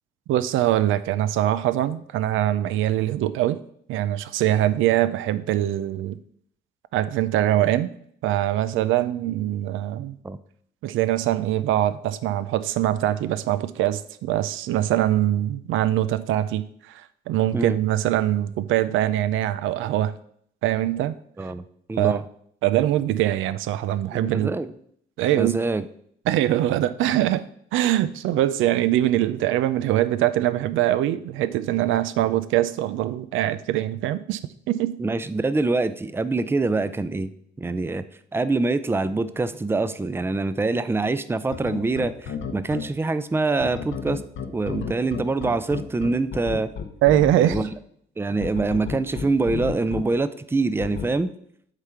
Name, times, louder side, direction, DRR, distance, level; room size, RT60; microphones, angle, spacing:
voice 1, 0.3-3.6 3.9-6.2 6.9-7.9 8.2-10.2 10.8-20.1 20.6-21.1 22.0-22.2 22.6-24.5 25.2-25.6 26.3-27.4 27.7-34.4 34.7-35.0 47.0-47.6, right 13 dB, 90° right, 14 dB, 0.5 m, -23 dB
voice 2, 21.9-22.2 24.1-24.7 25.3-25.8 35.0-37.3 37.6-38.0 38.3-44.2 44.5-46.7 47.4-47.7 48.2-51.3, right 3 dB, 10° right, 13 dB, 0.4 m, -25 dB
sound 1, 41.5-42.8 43.6-47.6 48.4-50.0 50.8-51.1, left 7 dB, 75° left, 1.0 m, -31 dB
8.1 x 3.7 x 5.7 m, 0.66 s
cardioid pair, 90°, 20 cm